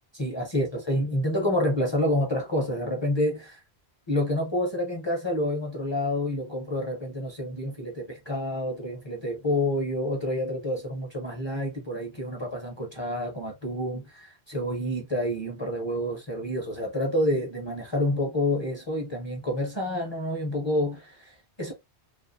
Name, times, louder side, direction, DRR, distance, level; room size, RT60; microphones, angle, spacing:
voice 1, 0.1-3.6 4.1-21.7, left 1 dB, 35° left, 0.5 m, -28 dB
2.4 x 2.3 x 2.5 m
omnidirectional pair, 1.1 m